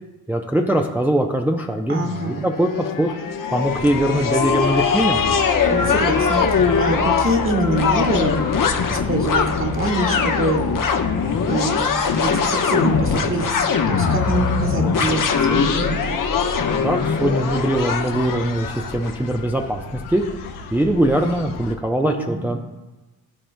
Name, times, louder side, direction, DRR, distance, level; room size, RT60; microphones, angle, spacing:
voice 1, 0.3-2.7 3.0-3.1 3.5-5.2 16.8-20.2 20.7-22.6, right 1 dB, 5° right, 2 dB, 0.6 m, -21 dB
voice 2, 1.9-2.4 5.7-8.4 8.9-10.7 11.5-16.2 22.0-22.5, right 2 dB, 25° right, 1 dB, 1.7 m, -25 dB
sound 1, 2.1-19.2, left 5 dB, 45° left, 1.0 m, -21 dB
sound 2, 3.6-21.8, left 3 dB, 85° left, 0.8 m, -36 dB
13.0 x 4.3 x 2.2 m, 1.1 s
hypercardioid pair, 45°, 46 cm